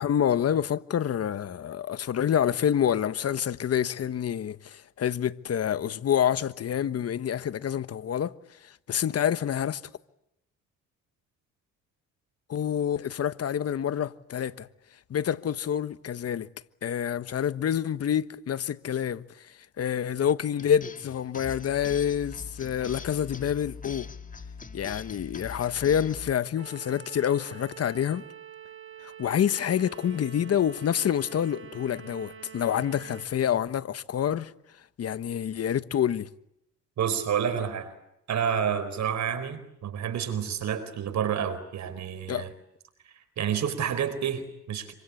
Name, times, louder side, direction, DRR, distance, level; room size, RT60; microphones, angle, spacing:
voice 1, 0.0-8.4 8.6-9.8 12.5-14.7 15.1-16.5 16.8-24.1 24.7-28.3 29.0-34.5 35.0-36.3 42.3-42.5, left 9 dB, 55° left, 1.3 m, -27 dB
sound 1, 20.6-26.3, left 4 dB, 25° left, 2.0 m, -42 dB
sound 2, 26.6-33.3, right 10 dB, 45° right, 4.1 m, -46 dB
voice 2, 37.0-37.9 38.3-42.5 43.4-44.9, right 8 dB, 65° right, 4.4 m, -29 dB
26.5 x 25.0 x 8.5 m
cardioid pair, 90°, 30 cm